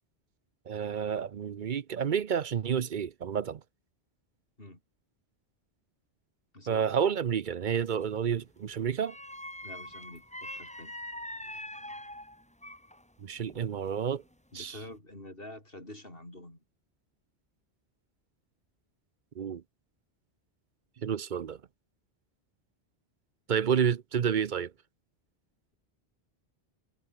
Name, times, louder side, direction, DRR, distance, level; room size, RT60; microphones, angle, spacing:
voice 1, 0.7-3.6 6.7-9.2 13.2-14.2 14.5-14.8 19.4-19.6 21.0-21.6 23.5-24.7, right 7 dB, 50° right, 0.8 m, -30 dB
voice 2, 6.5-6.9 9.6-11.0 14.5-16.6, left 1 dB, 55° left, 7.0 m, -47 dB
sound 1, 7.8-8.2 9.0-13.0 13.4-14.3 14.7-15.0, left 1 dB, 5° left, 1.5 m, -43 dB
omnidirectional pair, 1.1 m